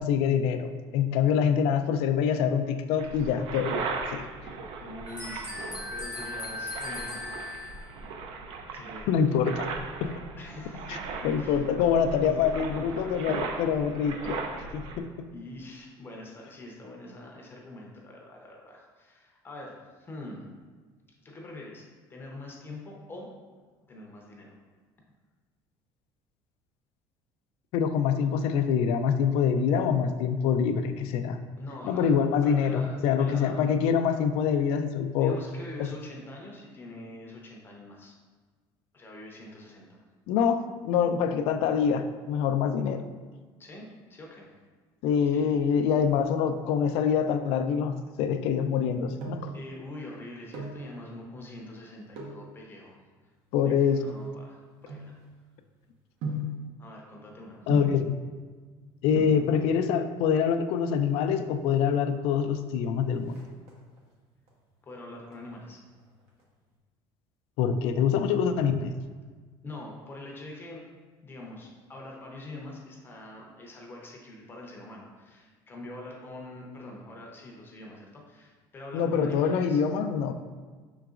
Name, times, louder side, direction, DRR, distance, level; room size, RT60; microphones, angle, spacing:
voice 1, 0.0-4.2 9.1-9.6 10.0-10.1 10.9-11.0 11.2-14.4 14.7-15.3 27.7-31.4 31.9-35.4 35.8-35.9 40.3-43.0 45.0-49.5 53.5-54.0 57.7-58.2 59.0-63.4 67.6-68.9 78.9-80.4, left 7 dB, 75° left, 8 dB, 0.3 m, -25 dB
sound 1, 3.0-15.0, right 4 dB, 55° right, 0.5 m, -38 dB
voice 2, 4.8-7.2 8.7-9.5 10.4-11.6 12.1-13.2 15.3-20.4 21.2-21.8 22.1-23.3 23.9-24.6 31.6-32.1 32.4-33.8 35.2-38.1 38.9-39.9 43.6-44.5 45.3-45.6 49.5-53.0 53.6-55.2 56.8-57.7 64.8-65.8 69.6-70.8 71.2-79.8, left 2 dB, 20° left, -1 dB, 0.6 m, -44 dB
sound 2, 5.1-7.9, left 2 dB, 10° right, 0.9 m, -38 dB
sound 3, 48.8-49.6 50.3-50.9 52.1-52.5 53.2-55.6 56.2-56.6 57.7-58.1 58.9-59.0 59.2-59.5 60.6-61.2 61.5-61.6 61.8-61.9 62.3-62.7 63.0-64.0 64.5-64.9 65.3-66.4 66.7-66.8, left 1 dB, 75° right, 1.1 m, -36 dB
5.7 x 3.8 x 2.4 m, 1.4 s
cardioid pair, 155°, 10 cm